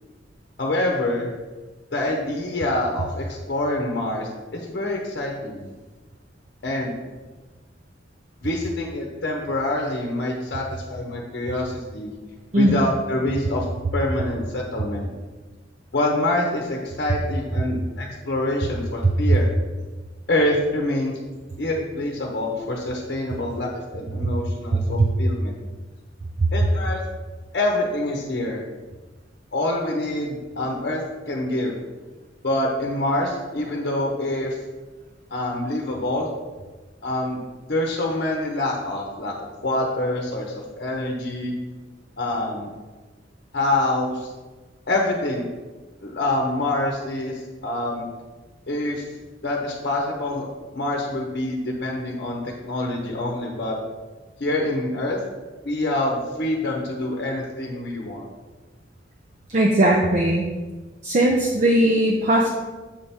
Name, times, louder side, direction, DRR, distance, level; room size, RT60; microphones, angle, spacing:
voice 1, 0.6-1.3 1.9-5.7 6.6-6.9 8.4-12.1 12.5-13.7 13.9-15.1 15.9-19.5 20.3-21.2 21.6-25.6 26.5-27.0 27.5-28.6 29.5-31.7 32.4-34.6 35.3-36.3 37.0-37.4 37.6-39.3 39.6-41.5 42.2-42.7 43.5-44.3 44.9-45.5 46.0-48.1 48.7-49.0 49.4-53.8 54.4-55.2 55.6-58.2, left 1 dB, 55° left, -1 dB, 0.8 m, -26 dB
voice 2, 12.5-12.8 24.2-24.3 25.0-25.1 26.4-26.5 59.5-60.5 61.0-62.5, right 1 dB, 40° right, 0 dB, 0.5 m, -19 dB
7.6 x 3.4 x 4.3 m, 1.3 s
head